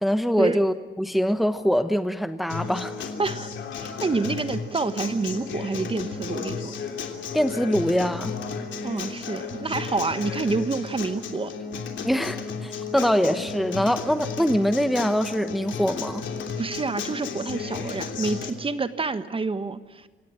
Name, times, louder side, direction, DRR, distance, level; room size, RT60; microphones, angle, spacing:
voice 1, 0.0-3.1 7.3-8.3 12.0-16.3, equal, ahead, 9 dB, 1.1 m, -24 dB
Acoustic guitar, 2.5-18.5, left 5 dB, 70° left, 3.2 m, -33 dB
voice 2, 3.2-6.7 8.8-11.5 16.6-20.1, right 4 dB, 25° right, 11 dB, 1.3 m, -28 dB
26.5 x 17.5 x 8.8 m, 1.3 s
cardioid pair, 90°, 20 cm